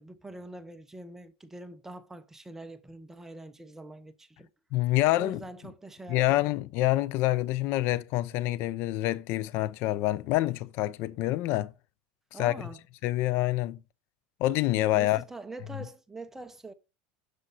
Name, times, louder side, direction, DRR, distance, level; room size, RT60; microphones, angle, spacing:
voice 1, 0.0-4.5 5.2-6.5 12.3-12.8 14.9-16.7, right 2 dB, 10° right, 0.9 m, -44 dB
voice 2, 4.7-5.4 6.1-11.7 12.4-12.7 13.0-13.8 14.4-15.2, left 16 dB, 60° left, 0.5 m, -27 dB
9.9 x 6.7 x 2.6 m
supercardioid pair, 120°, 5 cm